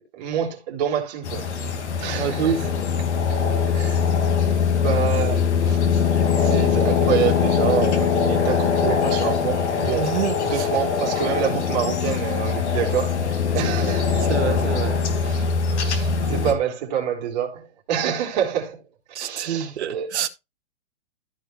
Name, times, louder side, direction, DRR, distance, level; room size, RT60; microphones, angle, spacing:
voice 1, 0.1-1.4 2.0-2.7 3.7-4.0 4.7-10.1 10.4-13.2 13.5-14.3 15.1-15.5 15.8-18.8 19.1-20.1, right 9 dB, 35° right, 3.8 m, -27 dB
sound 1, 1.2-16.5, left 6 dB, 65° left, 2.6 m, -22 dB
voice 2, 2.2-2.6 10.0-10.7 13.6-13.9 14.3-15.0 19.1-20.3, right 8 dB, 65° right, 1.8 m, -27 dB
15.0 x 5.4 x 3.1 m
hypercardioid pair, 175°, 36 cm